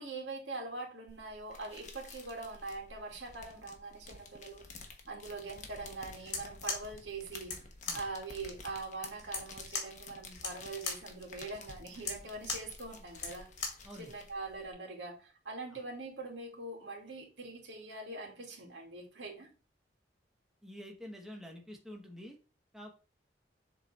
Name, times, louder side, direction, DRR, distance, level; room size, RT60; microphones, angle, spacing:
voice 1, 0.0-7.5 7.9-13.5 14.0-19.5, right 3 dB, 75° right, 2.3 m, -43 dB
sound 1, 1.1-14.7, left 4 dB, 40° left, 1.1 m, -52 dB
sound 2, 6.2-13.9, left 4 dB, 70° left, 2.0 m, -41 dB
voice 2, 20.6-22.4 22.7-22.9, equal, ahead, 1.1 m, -47 dB
7.1 x 3.7 x 4.2 m
head